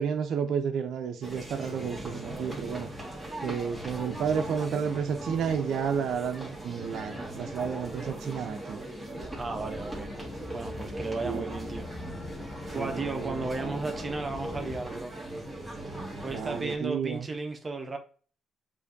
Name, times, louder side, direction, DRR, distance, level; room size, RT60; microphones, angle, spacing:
voice 1, 0.0-2.9 3.4-8.8 11.2-11.5 12.7-13.9 16.3-17.3, right 7 dB, 70° right, 0.4 m, -31 dB
sound 1, 1.2-16.8, right 1 dB, ahead, 1.6 m, -39 dB
sound 2, 9.2-14.8, left 2 dB, 30° left, 0.7 m, -42 dB
voice 2, 9.3-10.1 10.5-11.9 12.7-15.1 16.2-18.0, right 3 dB, 30° right, 0.7 m, -34 dB
6.8 x 2.6 x 2.6 m
cardioid pair, 90°, 0 cm